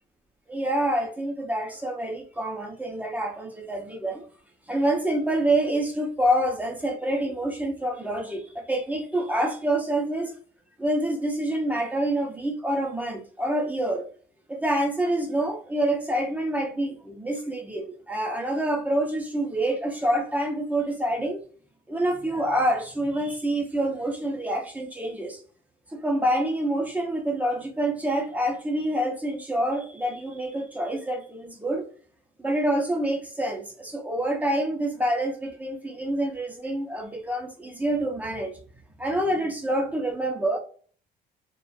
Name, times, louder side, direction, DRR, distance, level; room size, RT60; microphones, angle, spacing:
voice 1, 0.5-4.2 4.7-10.3 10.8-14.1 14.5-21.4 21.9-25.4 25.9-31.9 32.4-38.6 39.0-40.6, right 1 dB, 10° right, 0.6 m, -27 dB
2.4 x 2.2 x 2.4 m
cardioid pair, 110°, 17 cm